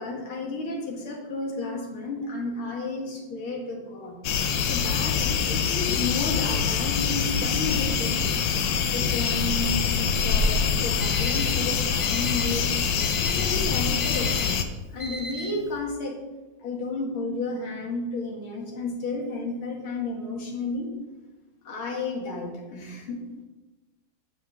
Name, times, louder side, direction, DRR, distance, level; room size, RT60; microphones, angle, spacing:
voice 1, 0.0-4.2 4.7-8.3 8.8-12.7 13.2-14.5 14.9-16.2 16.6-20.9 21.6-23.2, left 3 dB, 90° left, 0 dB, 2.7 m, -32 dB
sound 1, 4.2-14.6, left 6 dB, 70° left, 1.4 m, -25 dB
Alarm, 10.8-15.8, right 1 dB, 20° left, 1.4 m, -38 dB
9.1 x 5.4 x 7.5 m, 1.1 s
omnidirectional pair, 2.2 m